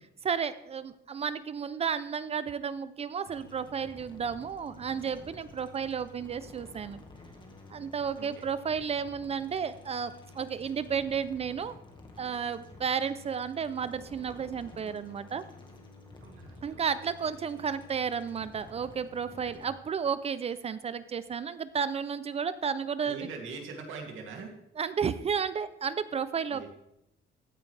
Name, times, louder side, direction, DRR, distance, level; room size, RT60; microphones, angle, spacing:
voice 1, 0.2-7.0 7.7-11.8 12.2-15.4 16.6-23.3 24.8-26.7, right 6 dB, 30° right, 14 dB, 0.4 m, -32 dB
sound 1, 3.3-19.7, left 3 dB, 25° left, 1.6 m, -51 dB
voice 2, 16.2-16.8 23.0-24.5 26.5-26.7, right 4 dB, 80° right, 1 dB, 2.5 m, -42 dB
15.5 x 9.0 x 3.3 m, 0.82 s
cardioid pair, 175°, 20 cm